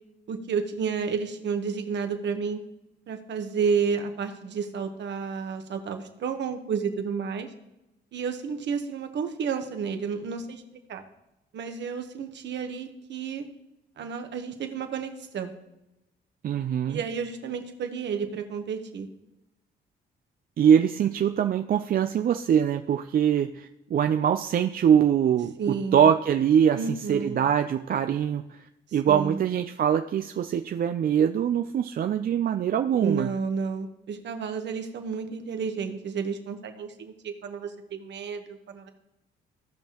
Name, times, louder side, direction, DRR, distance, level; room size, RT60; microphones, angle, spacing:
voice 1, 0.3-2.6 3.1-7.5 8.1-11.0 11.5-13.5 14.0-15.5 16.9-19.1 25.6-26.1 26.8-27.4 29.1-29.4 33.0-38.9, right 6 dB, 65° right, 6 dB, 1.2 m, -31 dB
voice 2, 16.4-17.0 20.6-28.6 28.9-33.3, right 8 dB, 50° right, 7 dB, 0.4 m, -23 dB
16.0 x 5.5 x 3.0 m, 0.93 s
cardioid pair, 90°, 20 cm